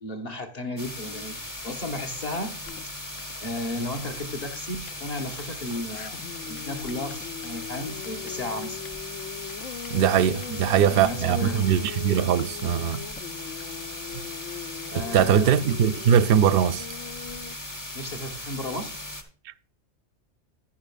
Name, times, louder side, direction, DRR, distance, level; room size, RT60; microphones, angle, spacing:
voice 1, 0.0-1.4 1.6-2.5 2.8-2.9 3.4-6.2 6.5-8.8 10.5-11.6 14.9-15.5 17.9-18.9, left 1 dB, 35° left, 1.4 m, -34 dB
sound 1, 0.8-19.2, left 1 dB, 15° left, 1.1 m, -38 dB
sound 2, 2.7-17.5, left 9 dB, 85° left, 1.0 m, -40 dB
voice 2, 9.9-13.0 14.9-16.9, right 8 dB, 60° right, 0.6 m, -21 dB
10.5 x 10.0 x 2.4 m
omnidirectional pair, 1.3 m